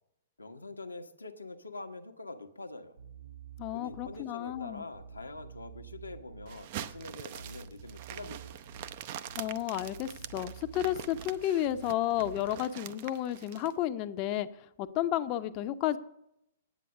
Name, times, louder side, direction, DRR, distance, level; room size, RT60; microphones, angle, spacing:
voice 1, 0.4-3.0 3.7-8.6, left 3 dB, 80° left, 6 dB, 1.0 m, -45 dB
Bass guitar, 3.0-12.6, right 6 dB, 60° right, 2.5 m, -49 dB
voice 2, 3.6-4.8 9.4-16.0, left 12 dB, 35° left, 11 dB, 0.6 m, -32 dB
sound 1, 6.5-13.7, right 11 dB, 45° right, 0.5 m, -44 dB
9.4 x 8.4 x 6.6 m, 0.80 s
figure-of-eight pair, 110°, 0 cm